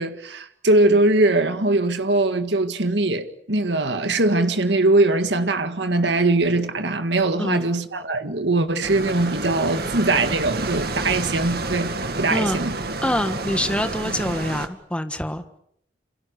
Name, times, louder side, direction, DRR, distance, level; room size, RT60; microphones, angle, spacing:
voice 1, 0.0-12.8, right 2 dB, 75° right, 1.9 m, -21 dB
sound 1, 8.8-14.7, right 2 dB, 60° right, 2.3 m, -29 dB
voice 2, 13.0-15.4, left 1 dB, 5° left, 1.5 m, -25 dB
28.5 x 27.0 x 6.6 m
head